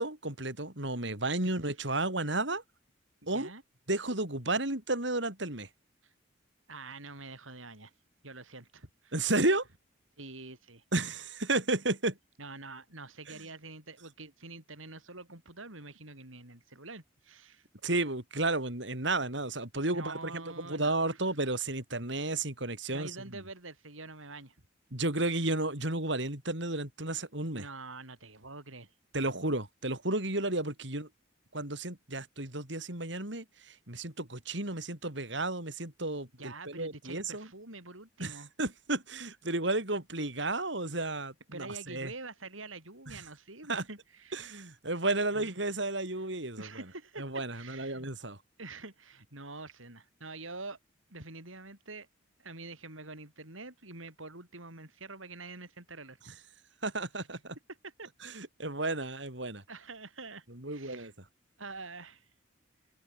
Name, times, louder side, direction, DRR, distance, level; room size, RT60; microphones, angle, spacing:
voice 1, 0.0-2.6 3.3-3.5 3.9-5.7 9.1-9.7 10.9-12.2 17.8-20.3 20.6-23.1 24.9-27.6 29.1-31.1 31.5-37.5 38.2-38.3 38.6-42.1 43.1-43.2 43.7-43.8 44.3-46.7 47.2-48.4 56.8-57.6 58.2-59.6 60.6-61.1, right 2 dB, 65° right, 4.9 m, -32 dB
voice 2, 3.2-3.6 6.0-6.1 6.7-7.9 8.2-9.1 10.2-10.8 12.4-17.7 19.9-21.2 22.9-24.6 27.5-28.9 36.3-38.5 41.5-44.6 45.3-45.8 46.6-48.1 48.6-50.8 51.1-52.1 52.4-56.2 57.2-57.3 57.7-58.1 59.7-61.1 61.6-62.3, right 3 dB, 90° right, 8.0 m, -46 dB
head